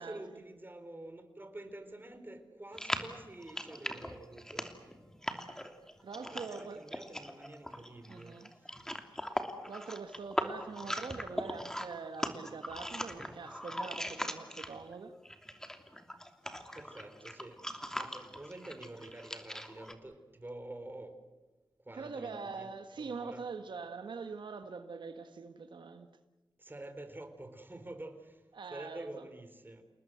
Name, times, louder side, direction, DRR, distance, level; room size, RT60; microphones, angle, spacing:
voice 1, 0.0-5.0 6.3-8.8 16.7-17.6 17.9-21.2 21.8-23.5 26.6-28.4 28.7-29.8, right 1 dB, 25° right, 4.1 m, -48 dB
sound 1, 2.7-14.9 15.2-19.9, equal, 5° left, 3.0 m, -40 dB
voice 2, 6.0-6.8 8.1-8.5 9.7-15.1 21.9-26.1 28.5-29.2, right 4 dB, 80° right, 1.6 m, -43 dB
29.0 x 19.5 x 8.0 m
cardioid pair, 60°, 8 cm